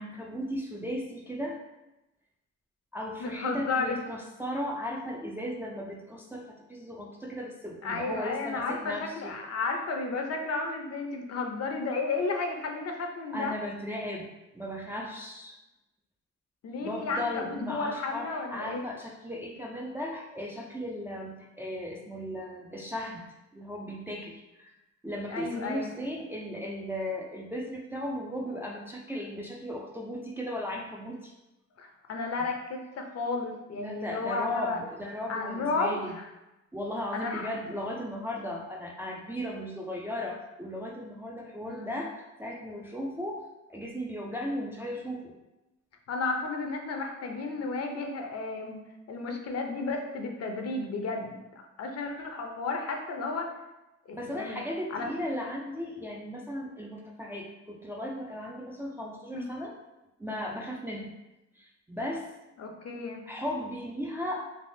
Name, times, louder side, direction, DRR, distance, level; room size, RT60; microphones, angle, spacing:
voice 1, 0.0-1.6 2.9-9.4 13.3-15.6 16.8-24.7 25.0-31.3 33.8-36.2 36.7-43.4 43.7-45.4 54.1-59.8 60.2-61.1 61.6-62.3 63.3-64.5, left 1 dB, 10° right, -2 dB, 0.3 m, -36 dB
voice 2, 3.2-4.0 7.8-13.5 16.6-18.9 25.3-25.9 31.8-34.8 35.3-36.3 37.1-37.5 41.7-41.9 46.1-51.4 51.8-53.5 54.1-54.6 54.9-55.1 59.3-59.5 62.6-63.2, left 3 dB, 55° left, 3 dB, 0.6 m, -33 dB
3.4 x 2.3 x 2.6 m, 0.98 s
cardioid pair, 90°, 30 cm